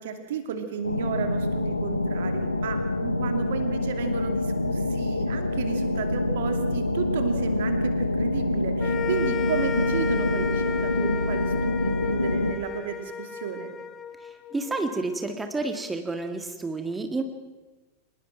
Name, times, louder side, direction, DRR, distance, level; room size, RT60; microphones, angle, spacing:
voice 1, 0.0-13.7, right 7 dB, 55° right, 7 dB, 2.7 m, -33 dB
sound 1, 0.8-12.5, left 2 dB, 85° left, 0.9 m, -26 dB
sound 2, 8.8-15.2, left 7 dB, 25° left, 1.0 m, -34 dB
voice 2, 14.2-17.2, right 3 dB, 10° right, 6 dB, 1.8 m, -30 dB
25.0 x 20.5 x 6.0 m, 1.2 s
figure-of-eight pair, 90°, 0 cm